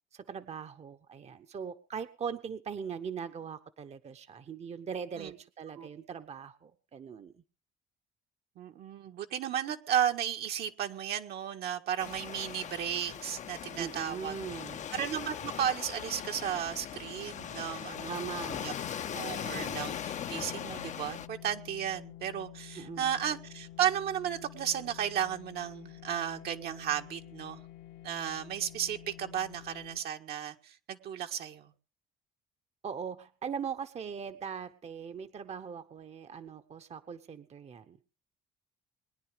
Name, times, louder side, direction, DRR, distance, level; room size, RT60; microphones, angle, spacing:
voice 1, 0.1-7.3 13.8-14.9 18.1-18.6 22.8-23.2 32.8-38.0, right 7 dB, 40° right, 10 dB, 1.0 m, -40 dB
voice 2, 8.6-14.4 14.9-18.7 19.1-27.6 28.0-31.7, right 9 dB, 70° right, 4 dB, 1.8 m, -34 dB
Waves surf, 12.0-21.3, left 9 dB, 45° left, 0.7 m, -40 dB
sound 1, 14.7-30.0, left 14 dB, 70° left, 1.2 m, -51 dB
22.0 x 10.0 x 5.0 m, 0.38 s
cardioid pair, 110°, 17 cm